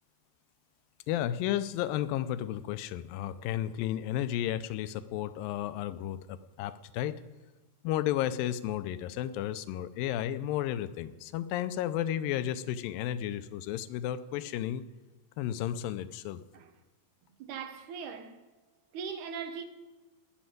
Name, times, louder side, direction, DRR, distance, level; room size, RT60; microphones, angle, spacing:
voice 1, 1.1-7.1 7.8-14.8 15.4-16.4, left 12 dB, 90° left, 2.4 m, -33 dB
voice 2, 17.4-18.4 18.9-19.6, right 6 dB, 70° right, 2.2 m, -40 dB
18.5 x 6.4 x 9.4 m
omnidirectional pair, 4.0 m